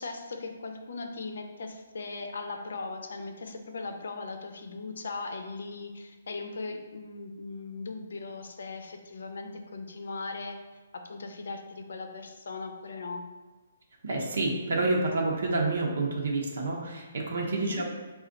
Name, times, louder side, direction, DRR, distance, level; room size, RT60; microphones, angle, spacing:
voice 1, 0.0-10.6 11.0-13.2 17.6-17.8, left 3 dB, 75° left, 5 dB, 0.5 m, -39 dB
voice 2, 14.0-17.8, right 2 dB, 70° right, -1 dB, 0.8 m, -28 dB
4.3 x 2.4 x 3.8 m, 1.3 s
hypercardioid pair, 170°, 0 cm